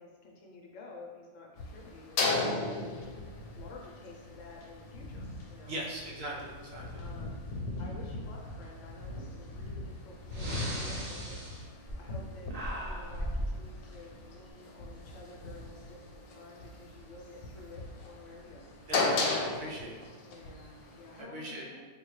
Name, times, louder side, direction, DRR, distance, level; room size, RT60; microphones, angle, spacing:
voice 1, 0.0-3.1 3.5-5.8 7.0-7.4 7.8-11.4 11.9-18.8 20.2-21.9, left 3 dB, 70° left, -1 dB, 0.9 m, -51 dB
sound 1, 1.6-21.2, left 3 dB, 90° left, 1.1 m, -37 dB
voice 2, 5.7-7.0 18.9-20.0 21.3-21.7, right 1 dB, 70° right, -3 dB, 1.0 m, -39 dB
Breathing, 9.8-9.9 10.3-12.2 12.5-13.6, equal, 50° right, 0.5 m, -37 dB
3.6 x 2.2 x 3.1 m, 1.4 s
omnidirectional pair, 1.5 m